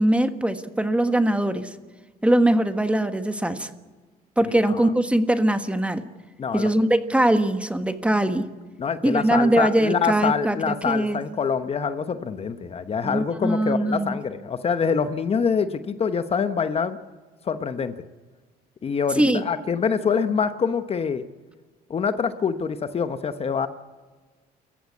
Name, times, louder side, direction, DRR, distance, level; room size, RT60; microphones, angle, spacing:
voice 1, 0.0-1.7 2.2-3.7 4.4-6.0 6.5-8.4 9.0-11.2 13.0-14.2 19.2-19.4, right 1 dB, 5° right, 9 dB, 1.4 m, -21 dB
voice 2, 4.4-4.8 6.4-6.7 8.8-17.0 17.4-17.9 18.8-21.2 21.9-23.7, left 6 dB, 35° left, 10 dB, 1.0 m, -25 dB
28.5 x 15.0 x 8.5 m, 1.4 s
cardioid pair, 110°, 17 cm